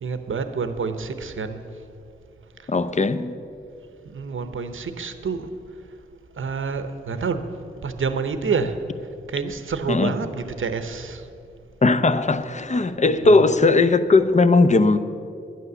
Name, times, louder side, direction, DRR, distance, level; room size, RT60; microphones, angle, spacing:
voice 1, 0.0-1.6 4.0-5.5 6.4-7.5 7.8-8.8 9.3-11.3 13.2-13.5, right 5 dB, 75° right, 0.8 m, -28 dB
voice 2, 2.7-3.3 9.9-10.1 11.8-15.0, left 3 dB, 35° left, 0.6 m, -18 dB
11.5 x 9.6 x 6.9 m
cardioid pair, 50°, 21 cm